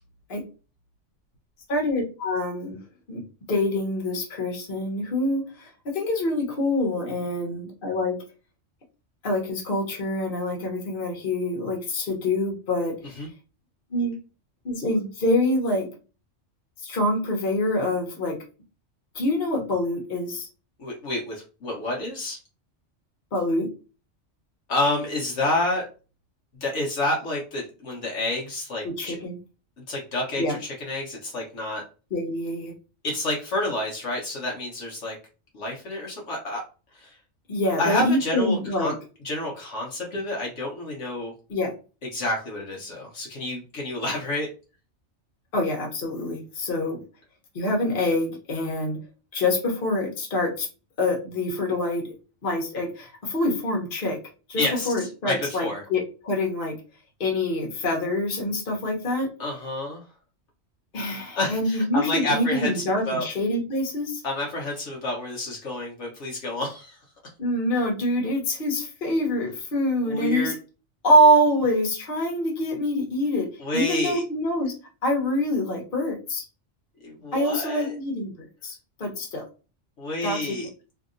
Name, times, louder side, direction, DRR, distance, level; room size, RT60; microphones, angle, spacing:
voice 1, 1.7-2.8 3.1-3.2 3.5-5.7 5.9-8.2 9.2-12.9 13.9-14.1 14.6-15.9 16.8-18.4 19.1-20.5 23.3-23.7 29.0-29.4 30.4-30.6 32.1-32.7 37.5-38.9 41.5-41.7 45.5-47.0 47.5-49.0 49.3-50.7 51.0-52.1 52.4-54.2 54.5-56.7 57.2-59.3 60.9-64.2 67.4-70.5 71.0-73.5 73.7-74.7 75.0-76.4 77.3-78.7 79.0-79.4 80.2-80.6, left 1 dB, 45° left, 0 dB, 1.1 m, -25 dB
voice 2, 20.8-22.4 24.7-25.9 26.6-29.2 29.9-31.8 33.0-35.2 35.5-36.6 36.9-37.2 37.8-38.9 39.2-41.3 42.1-44.5 54.6-55.8 59.4-60.0 61.4-63.3 64.2-67.0 70.0-70.5 73.6-74.2 77.0-77.9 80.0-80.7, left 2 dB, 70° left, -1 dB, 1.1 m, -29 dB
2.8 x 2.7 x 2.5 m, 0.34 s
omnidirectional pair, 1.3 m